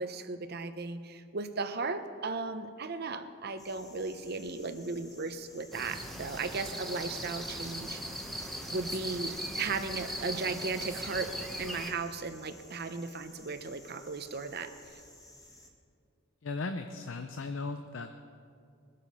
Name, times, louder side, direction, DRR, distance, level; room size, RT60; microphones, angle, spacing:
voice 1, 0.0-8.0 8.7-14.7, right 4 dB, 50° right, 10 dB, 0.8 m, -36 dB
sound 1, 3.6-15.7, left 1 dB, 20° left, 1.7 m, -55 dB
sound 2, 5.7-11.9, equal, ahead, 1.0 m, -39 dB
voice 2, 16.4-18.1, left 3 dB, 70° left, 7 dB, 0.6 m, -37 dB
21.0 x 7.6 x 5.6 m, 2.3 s
head